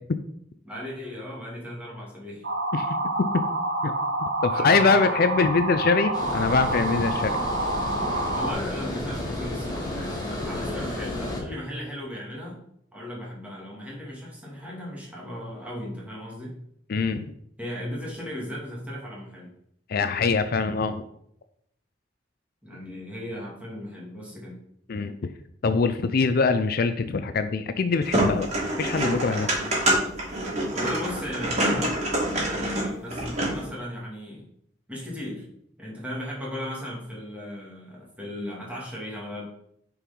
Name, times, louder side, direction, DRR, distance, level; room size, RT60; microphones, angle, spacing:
voice 1, 0.6-2.5 4.5-5.2 8.3-12.6 12.9-16.6 17.6-19.5 22.6-24.6 30.7-32.0 32.4-34.4 34.9-35.4 35.8-39.4, left 1 dB, 10° right, -5 dB, 2.6 m, -36 dB
sound 1, 2.4-8.5, right 2 dB, 85° right, 1.6 m, -28 dB
voice 2, 4.2-7.4 16.9-17.3 19.9-21.0 24.9-25.1 25.6-28.5 28.8-29.5, left 4 dB, 55° left, 10 dB, 0.5 m, -23 dB
Water, 6.1-11.4, left 1 dB, 25° left, 2.9 m, -32 dB
sound 2, 28.0-33.7, right 1 dB, 40° right, 2.7 m, -26 dB
7.0 x 4.7 x 5.3 m, 0.72 s
head